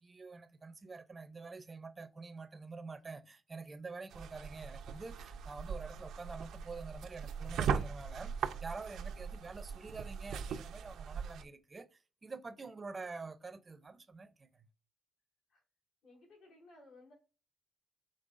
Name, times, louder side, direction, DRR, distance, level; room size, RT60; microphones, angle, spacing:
voice 1, 0.0-14.7, right 4 dB, 25° right, 0.5 m, -47 dB
sound 1, 4.1-11.4, right 6 dB, 80° right, 0.5 m, -39 dB
voice 2, 16.0-17.1, left 2 dB, 80° left, 2.7 m, -60 dB
5.2 x 3.8 x 2.5 m
cardioid pair, 115°, 0 cm